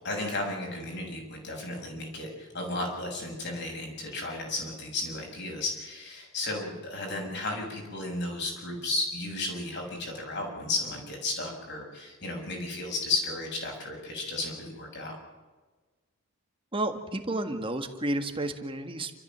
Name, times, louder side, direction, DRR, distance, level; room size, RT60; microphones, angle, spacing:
voice 1, 0.0-15.2, left 2 dB, 55° left, 1 dB, 7.1 m, -34 dB
voice 2, 16.7-19.1, right 1 dB, 25° right, 7 dB, 1.8 m, -31 dB
28.0 x 14.5 x 7.5 m, 1.3 s
head